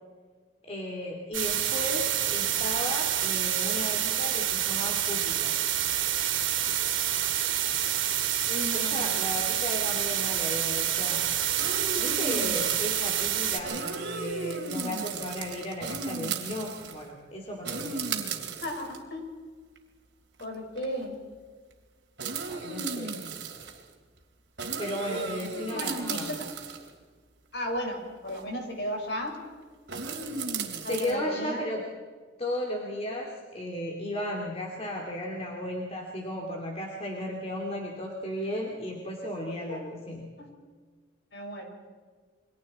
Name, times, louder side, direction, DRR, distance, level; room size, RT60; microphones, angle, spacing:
voice 1, 0.7-5.5 8.7-11.2 12.0-18.1 22.5-23.1 24.8-26.3 30.9-31.8 32.4-40.3, left 1 dB, 30° left, -1 dB, 2.7 m, -35 dB
sound 1, 1.3-13.6, right 11 dB, 85° right, 2.9 m, -28 dB
voice 2, 8.5-9.0 18.6-19.2 20.4-21.1 25.1-25.5 25.7-26.4 27.5-29.3 30.8-31.6 39.7-39.8 40.4-40.5 41.3-41.7, left 1 dB, 60° left, 2 dB, 5.2 m, -34 dB
sound 2, 11.6-13.2 13.6-17.0 17.6-19.0 19.8-19.9 20.4-20.5 20.8-21.0 22.2-23.8 24.6-26.9 28.3-28.4 29.9-31.1, right 4 dB, 65° right, 2.9 m, -35 dB
29.0 x 24.0 x 4.3 m, 1.5 s
head